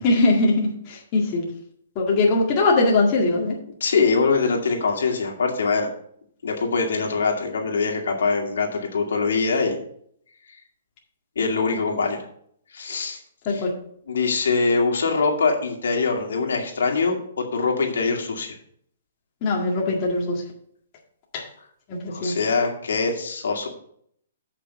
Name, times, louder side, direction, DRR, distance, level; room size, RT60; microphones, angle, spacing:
voice 1, 0.0-1.4 2.0-3.5 13.5-13.7 19.4-20.4 21.3-21.4 21.9-22.3, left 2 dB, 30° left, -2 dB, 1.9 m, -21 dB
voice 2, 3.8-5.9 6.4-9.8 11.4-12.2 12.7-13.2 13.5-13.6 14.1-18.6 22.1-23.7, left 4 dB, 80° left, 2 dB, 2.2 m, -23 dB
8.2 x 5.9 x 5.6 m, 0.66 s
hypercardioid pair, 160°, 0 cm